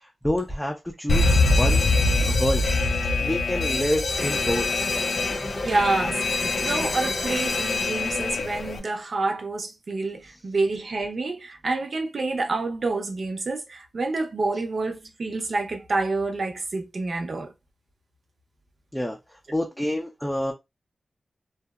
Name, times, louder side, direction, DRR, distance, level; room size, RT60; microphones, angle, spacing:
voice 1, 0.2-1.9 2.2-2.6 3.2-4.7 18.9-19.2 19.5-20.5, left 1 dB, 5° left, 0.5 m, -27 dB
Alarm, 1.1-8.8, left 3 dB, 75° left, 0.4 m, -24 dB
sound 1, 4.1-8.8, left 1 dB, 45° left, 0.7 m, -35 dB
voice 2, 5.6-17.5, right 3 dB, 60° right, 0.6 m, -28 dB
2.7 x 2.0 x 2.3 m
wide cardioid pair, 85°, 0 cm